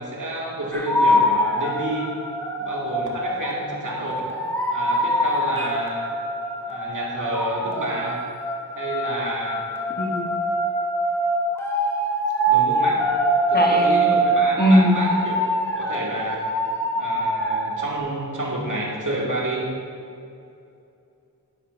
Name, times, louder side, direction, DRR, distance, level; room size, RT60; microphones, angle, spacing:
voice 1, 0.0-2.1 2.6-4.2 4.7-6.1 6.7-8.2 8.8-9.6 12.5-13.1 13.5-15.4 15.8-16.4 16.9-19.7, right 1 dB, 50° right, -4 dB, 2.5 m, -29 dB
sound 1, 0.7-18.0, right 1 dB, 5° left, 2.0 m, -24 dB
voice 2, 13.5-14.1 14.6-15.0, equal, 25° left, -1 dB, 1.4 m, -19 dB
12.0 x 10.0 x 2.7 m, 2.6 s
cardioid pair, 45°, 40 cm